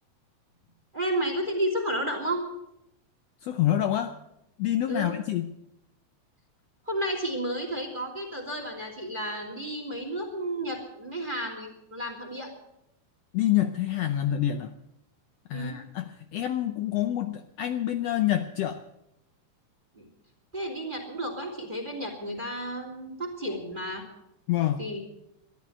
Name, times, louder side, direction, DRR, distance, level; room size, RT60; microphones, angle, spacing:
voice 1, 0.9-2.4 4.9-5.1 6.9-12.5 15.5-15.8 19.9-20.1 20.5-24.0 24.8-25.0, right 1 dB, 15° right, 3 dB, 2.9 m, -32 dB
voice 2, 3.4-4.1 4.6-5.5 13.3-14.7 15.5-18.8 24.5-24.8, left 12 dB, 75° left, 7 dB, 1.7 m, -27 dB
13.5 x 11.5 x 7.9 m, 0.84 s
omnidirectional pair, 3.4 m